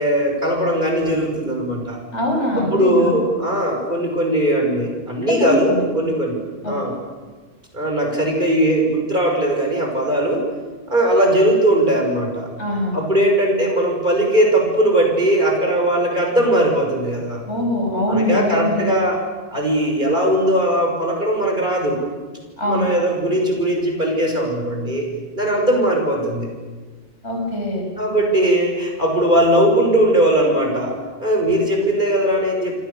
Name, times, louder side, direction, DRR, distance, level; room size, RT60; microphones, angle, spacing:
voice 1, 0.0-2.0 2.5-6.4 6.7-7.0 7.7-10.5 10.9-12.5 12.9-17.5 18.1-19.2 19.5-22.0 22.7-25.1 25.3-26.5 28.0-32.8, right 1 dB, 40° right, 1 dB, 6.3 m, -19 dB
voice 2, 2.1-3.2 5.2-5.8 6.6-6.8 12.6-13.0 17.4-18.9 22.6-22.9 27.2-27.9, left 1 dB, 60° left, 1 dB, 7.0 m, -22 dB
28.5 x 25.0 x 7.0 m, 1.4 s
omnidirectional pair, 1.3 m